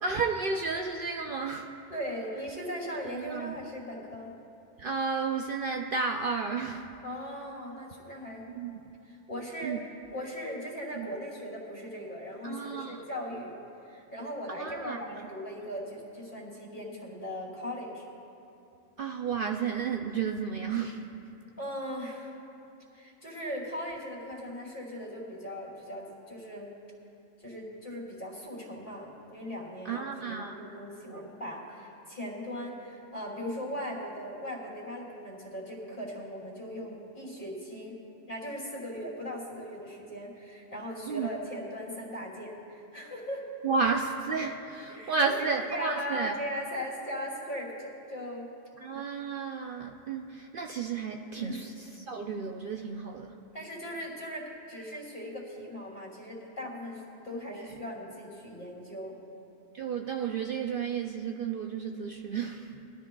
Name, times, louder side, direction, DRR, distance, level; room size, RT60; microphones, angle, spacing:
voice 1, 0.0-1.7 3.0-3.5 4.8-6.8 8.5-8.8 9.6-9.8 11.0-11.1 12.4-13.0 14.6-15.0 19.0-21.0 29.8-30.6 41.1-41.3 43.6-46.3 48.8-53.4 57.5-57.8 59.7-62.8, right 5 dB, 60° right, 3 dB, 0.6 m, -32 dB
voice 2, 1.9-4.3 7.0-8.5 9.0-9.7 10.1-13.5 13.8-18.0 21.6-22.3 22.9-26.7 27.4-38.0 38.3-43.5 44.9-48.5 51.4-51.7 53.5-59.2, equal, 45° left, -5 dB, 2.9 m, -39 dB
22.0 x 13.0 x 2.3 m, 2.8 s
omnidirectional pair, 1.2 m